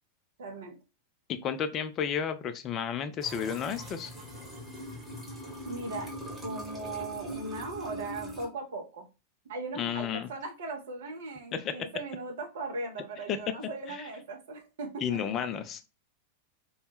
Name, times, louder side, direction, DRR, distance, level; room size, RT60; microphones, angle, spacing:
voice 1, 0.4-0.7 5.7-6.1 6.4-9.0 9.5-15.2, right 3 dB, 60° right, 3 dB, 0.5 m, -38 dB
voice 2, 1.3-4.1 9.8-10.3 11.5-11.7 13.3-13.4 13.9-14.0 15.0-15.9, left 8 dB, 30° left, 10 dB, 0.3 m, -32 dB
sound 1, 3.2-8.5, equal, 5° right, 0.9 m, -41 dB
2.1 x 2.0 x 3.0 m, 0.29 s
figure-of-eight pair, 90°, 0 cm